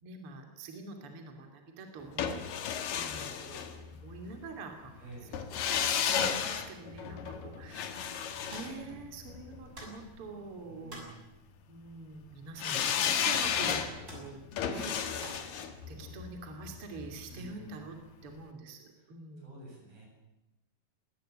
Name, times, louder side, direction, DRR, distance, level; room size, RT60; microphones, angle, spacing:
voice 1, 0.0-2.4 2.9-5.4 5.7-5.8 6.1-11.0 11.7-14.4 14.7-18.0 18.2-19.5, right 3 dB, 40° right, 4 dB, 3.2 m, -46 dB
sound 1, 2.2-4.3 5.3-9.6 12.6-17.6 17.9-18.0, left 8 dB, 65° left, 3.1 m, -33 dB
voice 2, 5.0-5.6 10.6-11.2 17.3-17.8 19.4-20.1, right 2 dB, 65° right, -1 dB, 9.6 m, -50 dB
sound 2, 8.5-8.8 9.7-10.0 10.9-11.2 12.8-13.2 13.5-13.6 14.1-14.3 15.2-15.5, right 1 dB, 20° right, 6.9 m, -46 dB
21.5 x 17.0 x 8.8 m, 0.99 s
omnidirectional pair, 4.5 m